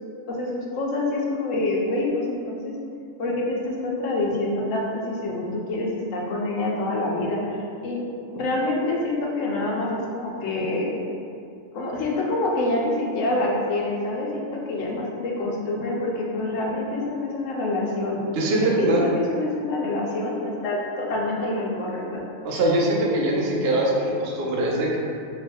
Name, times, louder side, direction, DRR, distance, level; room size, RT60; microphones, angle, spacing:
voice 1, 0.3-2.7 3.2-8.0 8.3-10.9 11.7-18.3 18.5-22.2, left 2 dB, 70° left, -2 dB, 1.0 m, -26 dB
voice 2, 18.4-19.0 22.4-25.0, right 1 dB, 60° right, -3 dB, 0.8 m, -22 dB
3.0 x 2.2 x 4.2 m, 2.5 s
omnidirectional pair, 1.4 m